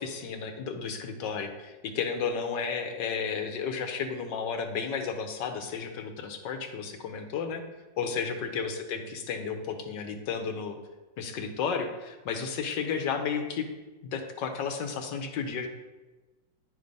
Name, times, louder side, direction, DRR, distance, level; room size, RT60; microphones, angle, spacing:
voice 1, 0.0-7.6 8.0-10.8 11.2-13.7 14.0-15.7, left 6 dB, 70° left, 5 dB, 1.4 m, -33 dB
9.2 x 3.4 x 5.2 m, 1.2 s
omnidirectional pair, 2.0 m